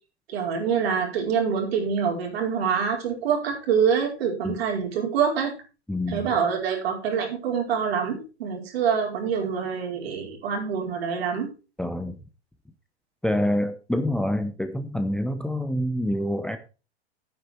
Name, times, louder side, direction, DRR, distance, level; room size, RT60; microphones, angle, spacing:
voice 1, 0.3-5.5 6.1-11.5, right 7 dB, 65° right, 2 dB, 4.8 m, -25 dB
voice 2, 5.9-6.3 11.8-12.2 13.2-16.6, left 1 dB, ahead, 8 dB, 0.9 m, -26 dB
9.5 x 9.5 x 4.6 m, 0.32 s
figure-of-eight pair, 95°, 33 cm